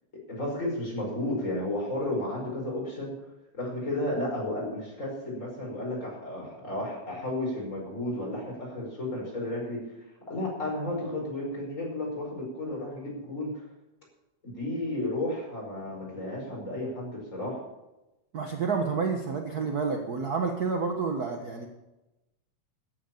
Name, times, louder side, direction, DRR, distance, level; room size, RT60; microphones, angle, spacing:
voice 1, 0.3-3.1 3.6-9.8 10.3-13.6 14.4-17.6, left 1 dB, 25° left, -2 dB, 5.5 m, -33 dB
voice 2, 18.3-21.7, right 5 dB, 60° right, 3 dB, 1.0 m, -29 dB
14.0 x 9.4 x 7.1 m, 0.99 s
omnidirectional pair, 3.4 m